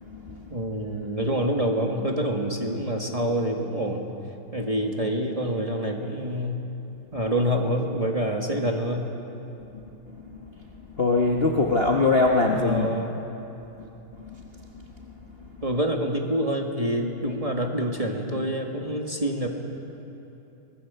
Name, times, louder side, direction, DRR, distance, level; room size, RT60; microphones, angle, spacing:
voice 1, 0.5-4.1 4.5-6.6 7.1-9.1 12.4-13.2 15.6-19.5, equal, 20° right, 0 dB, 1.6 m, -27 dB
voice 2, 11.0-12.9 14.3-14.4, left 3 dB, 35° left, -1 dB, 1.2 m, -21 dB
24.0 x 19.0 x 7.0 m, 2.9 s
omnidirectional pair, 2.3 m